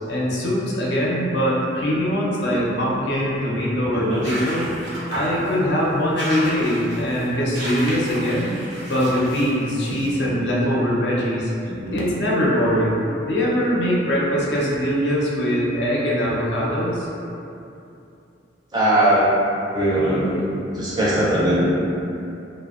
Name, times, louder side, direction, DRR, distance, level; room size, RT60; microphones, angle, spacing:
voice 1, 0.1-4.7 5.1-8.6 8.9-11.5 11.9-13.0 13.3-17.1, equal, 65° left, -5 dB, 0.5 m, -22 dB
voice 2, 3.9-4.4 9.9-10.2 11.7-12.1 18.7-19.3 19.7-20.5 20.7-21.6, right 1 dB, 20° right, -8 dB, 0.4 m, -21 dB
sound 1, 4.1-10.2, right 1 dB, 90° right, 0.7 m, -33 dB
2.7 x 2.1 x 2.3 m, 2.7 s
head